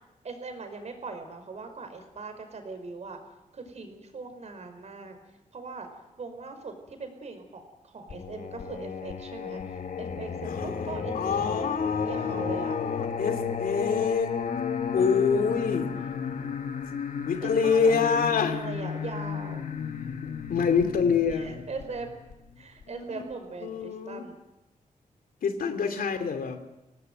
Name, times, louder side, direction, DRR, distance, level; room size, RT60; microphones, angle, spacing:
voice 1, 0.2-3.2 3.5-5.2 5.5-5.9 6.2-11.8 12.0-12.8 17.4-19.7 21.3-22.1 22.6-24.4, right 4 dB, 50° right, 6 dB, 5.0 m, -40 dB
Singing, 8.1-22.8, left 6 dB, 65° left, 2.0 m, -33 dB
voice 2, 10.4-10.9 11.1-14.4 14.9-15.9 17.2-18.6 20.2-21.6 22.9-23.2 23.6-24.2 25.4-26.6, left 6 dB, 80° left, 7 dB, 2.7 m, -26 dB
26.0 x 18.5 x 9.3 m, 0.98 s
wide cardioid pair, 145°, 14 cm